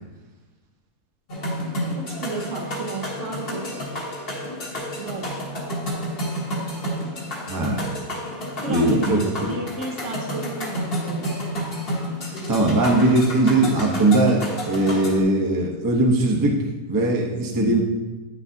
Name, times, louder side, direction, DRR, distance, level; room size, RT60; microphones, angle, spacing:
sound 1, 1.3-15.2, equal, 45° left, 1.2 m, -30 dB
voice 1, 1.9-3.8 5.0-5.5 6.8-7.4 8.6-11.4, right 3 dB, 60° right, 0 dB, 1.2 m, -33 dB
voice 2, 7.5-7.8 8.7-9.5 12.5-17.8, right 2 dB, 20° right, -1 dB, 0.7 m, -20 dB
8.8 x 6.4 x 2.7 m, 1.2 s
omnidirectional pair, 1.5 m